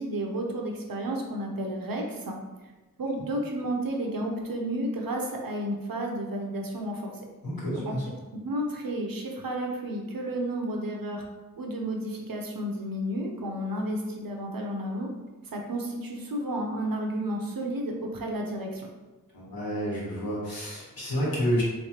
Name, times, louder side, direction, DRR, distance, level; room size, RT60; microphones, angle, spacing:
voice 1, 0.0-2.4 3.0-7.1 7.7-7.9 8.4-11.2 11.6-15.1 15.5-18.9, right 1 dB, 75° right, 1 dB, 0.7 m, -32 dB
voice 2, 7.4-8.0 19.3-21.6, equal, 90° left, -7 dB, 1.5 m, -29 dB
3.3 x 3.1 x 2.8 m, 1.2 s
wide cardioid pair, 75°, 34 cm